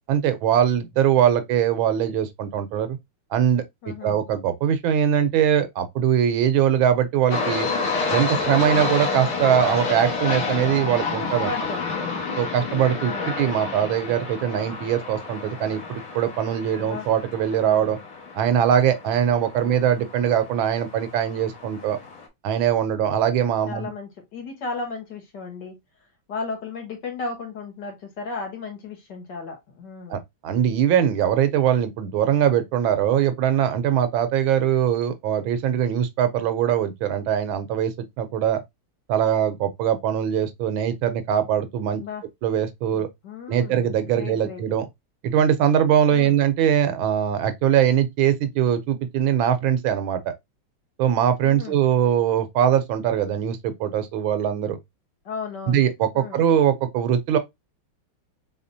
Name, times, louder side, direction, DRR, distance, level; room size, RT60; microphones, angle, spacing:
voice 1, 0.1-3.0 3.3-7.7 8.1-11.5 12.4-18.0 18.3-22.0 22.4-23.9 30.1-38.6 39.1-42.0 42.4-43.1 43.5-44.9 45.2-50.3 51.0-54.8 55.7-57.4, right 9 dB, 75° right, 1.4 m, -22 dB
voice 2, 3.8-4.2 11.2-11.9 13.1-13.4 16.8-17.1 17.6-17.9 19.6-19.7 23.7-25.8 26.3-30.2 42.0-42.2 42.9-44.6 46.1-46.4 51.4-51.9 55.3-55.9 56.1-56.4, left 4 dB, 55° left, 1.8 m, -35 dB
sound 1, 7.3-22.3, left 4 dB, 75° left, 2.0 m, -30 dB
4.2 x 3.8 x 2.6 m
omnidirectional pair, 2.3 m